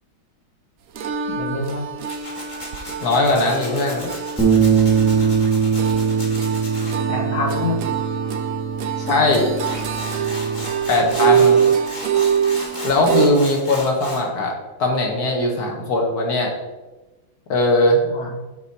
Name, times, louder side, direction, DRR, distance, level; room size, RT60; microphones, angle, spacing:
sound 1, 0.9-13.3, right 7 dB, 75° right, 0.7 m, -24 dB
voice 1, 1.3-1.9 7.1-7.9 11.0-11.5 18.0-18.3, left 3 dB, 75° left, 1 dB, 2.0 m, -27 dB
Tools, 2.0-6.9 9.3-9.4 9.6-14.2, left 1 dB, 25° left, 1.4 m, -35 dB
voice 2, 3.0-4.1 9.0-9.5 10.9-11.6 12.8-16.5 17.5-18.0, left 2 dB, 55° left, 1 dB, 1.6 m, -19 dB
sound 2, 4.4-10.6, right 6 dB, 5° right, 0.8 m, -21 dB
9.5 x 4.3 x 4.2 m, 1.1 s
omnidirectional pair, 2.2 m